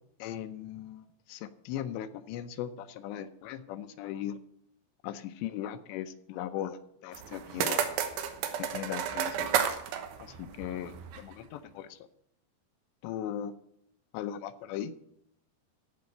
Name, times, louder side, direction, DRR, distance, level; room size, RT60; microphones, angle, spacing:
voice 1, 0.2-4.4 5.0-7.9 8.6-9.7 10.2-12.0 13.0-13.5 14.1-14.9, left 10 dB, 85° left, 10 dB, 2.8 m, -38 dB
sound 1, 7.1-11.3, right 8 dB, 75° right, 3.1 m, -32 dB
15.0 x 5.2 x 7.7 m, 0.76 s
omnidirectional pair, 5.0 m